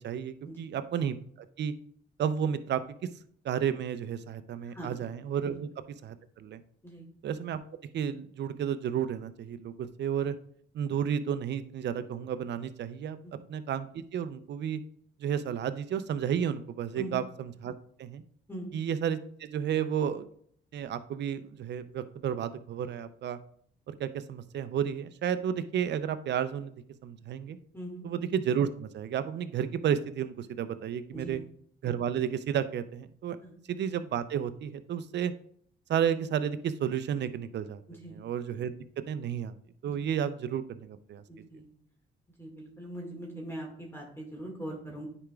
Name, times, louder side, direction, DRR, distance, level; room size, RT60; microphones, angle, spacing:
voice 1, 0.0-1.7 2.2-2.8 3.4-5.7 6.0-6.6 7.2-7.6 7.9-10.4 10.7-13.2 13.5-14.8 15.2-17.7 18.0-18.2 18.7-20.3 20.7-23.4 23.9-26.7 27.0-27.6 28.0-31.4 31.8-33.4 33.7-35.3 35.9-37.8 38.1-38.7 39.1-39.5 39.8-41.2, right 8 dB, 60° right, 12 dB, 0.6 m, -32 dB
voice 2, 4.6-5.0 5.4-5.5 6.8-7.1 13.2-13.3 16.9-17.2 18.5-18.7 27.7-28.1 31.1-31.4 33.4-33.5 37.9-38.2 39.8-40.1 41.3-41.7 42.4-45.1, right 1 dB, 10° left, -1 dB, 2.0 m, -41 dB
9.8 x 5.0 x 2.4 m, 0.63 s
cardioid pair, 90°, 20 cm